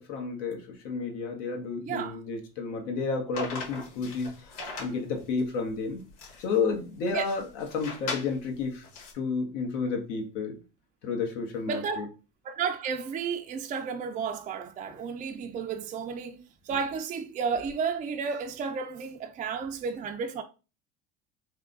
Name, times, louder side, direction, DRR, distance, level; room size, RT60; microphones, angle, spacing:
voice 1, 0.0-4.5 4.8-6.0 6.4-8.8 9.1-10.6 11.0-12.1, left 4 dB, 80° left, 1.4 m, -31 dB
voice 2, 1.8-2.2 4.6-4.9 7.1-7.2 11.6-12.1 12.4-20.4, right 6 dB, 20° right, 0.4 m, -32 dB
sound 1, 3.3-9.1, left 4 dB, 55° left, 1.7 m, -40 dB
3.5 x 2.3 x 3.8 m
supercardioid pair, 115°, 36 cm